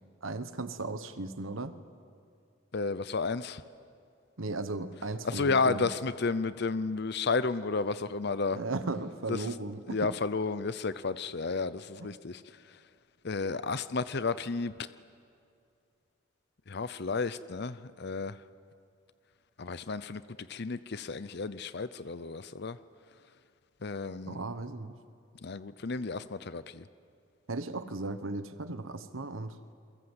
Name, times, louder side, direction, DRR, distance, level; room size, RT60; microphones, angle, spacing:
voice 1, 0.2-1.7 4.4-5.9 8.5-10.1 24.2-24.9 27.5-29.6, right 2 dB, 80° right, 11 dB, 1.3 m, -36 dB
voice 2, 2.7-3.6 5.2-8.6 9.3-9.5 9.9-12.4 13.2-14.7 16.7-18.4 19.6-20.2 20.5-22.8 23.8-24.4 25.4-26.9, left 4 dB, 55° left, 14 dB, 0.6 m, -32 dB
29.0 x 22.5 x 8.0 m, 2.4 s
head